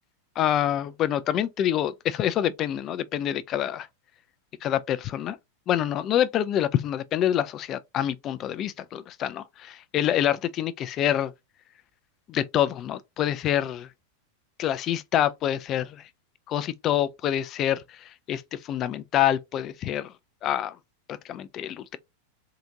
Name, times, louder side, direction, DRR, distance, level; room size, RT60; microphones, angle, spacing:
voice 1, 0.4-3.9 4.6-5.4 5.7-11.3 12.3-13.9 14.6-16.1 16.5-20.1 20.4-20.8 21.1-22.0, left 11 dB, 30° left, 0.3 m, -26 dB
3.7 x 2.5 x 2.8 m
figure-of-eight pair, 90°, 0 cm